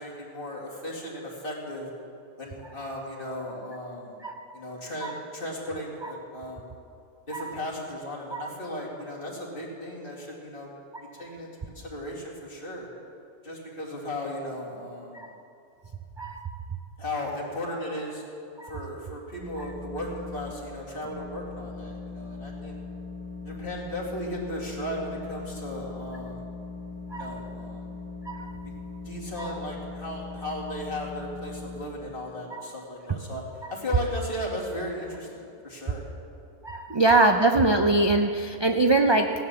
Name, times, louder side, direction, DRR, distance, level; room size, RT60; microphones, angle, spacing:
voice 1, 0.0-1.9 2.4-4.2 4.5-6.8 7.3-10.7 11.1-11.5 11.7-12.9 13.4-15.2 17.0-18.2 18.6-22.8 23.4-26.5 27.1-27.9 29.0-36.1 36.9-37.0, left 1 dB, 45° left, -3 dB, 2.6 m, -36 dB
voice 2, 16.2-16.6 18.6-18.7 27.1-27.4 28.3-28.6 29.4-29.5 32.5-32.6 36.6-39.3, right 2 dB, 40° right, 4 dB, 0.4 m, -23 dB
sound 1, 19.3-20.5 21.0-31.8, left 3 dB, 10° left, 1.2 m, -40 dB
16.0 x 9.3 x 7.0 m, 2.5 s
omnidirectional pair, 1.3 m